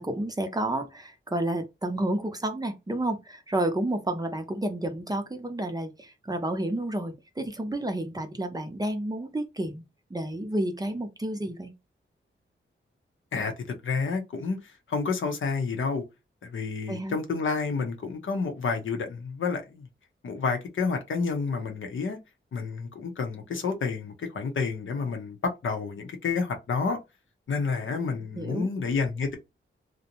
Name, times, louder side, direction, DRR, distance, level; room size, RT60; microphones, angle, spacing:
voice 1, 0.0-9.8 10.1-11.7 16.9-17.1 28.3-28.7, right 1 dB, 20° right, 0.5 m, -30 dB
voice 2, 13.3-16.0 16.4-19.9 20.2-22.2 22.5-27.0 27.5-29.3, left 4 dB, 70° left, 0.7 m, -29 dB
2.6 x 2.1 x 2.8 m
wide cardioid pair, 80°, 21 cm